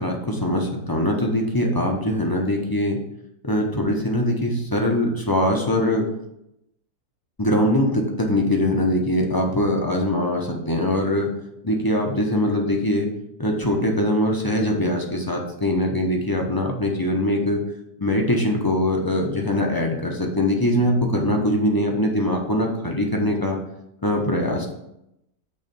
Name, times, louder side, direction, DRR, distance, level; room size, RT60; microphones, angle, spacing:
voice 1, 0.0-3.0 3.4-6.1 7.4-11.3 11.6-13.1 13.4-17.6 18.0-23.6 24.0-24.7, left 1 dB, 20° left, 0 dB, 0.6 m, -22 dB
8.7 x 3.2 x 5.3 m, 0.83 s
omnidirectional pair, 1.7 m